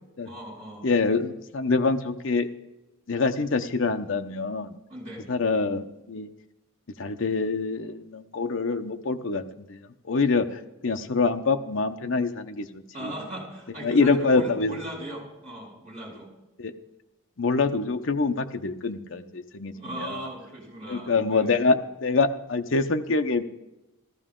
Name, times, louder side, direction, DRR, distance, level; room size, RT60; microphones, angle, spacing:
voice 1, 0.2-0.9 4.9-5.3 12.9-16.3 19.7-21.5, right 1 dB, 35° right, -3 dB, 5.2 m, -38 dB
voice 2, 0.8-2.5 3.1-4.8 5.3-6.3 7.0-9.8 10.0-10.5 10.8-13.1 13.8-14.8 16.6-16.7 17.4-20.2 20.9-23.4, left 4 dB, 60° left, 7 dB, 0.7 m, -25 dB
14.5 x 14.0 x 3.7 m, 0.95 s
head